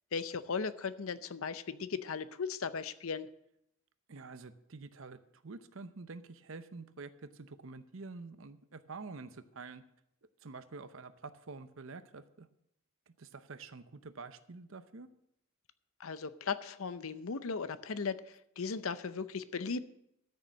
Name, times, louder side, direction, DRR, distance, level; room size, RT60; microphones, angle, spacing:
voice 1, 0.1-3.3 16.0-18.2 18.6-19.8, left 5 dB, 70° left, 13 dB, 0.6 m, -37 dB
voice 2, 4.1-9.8 10.4-12.5 13.1-15.1, right 4 dB, 65° right, 12 dB, 0.7 m, -48 dB
13.0 x 6.7 x 6.2 m, 0.77 s
head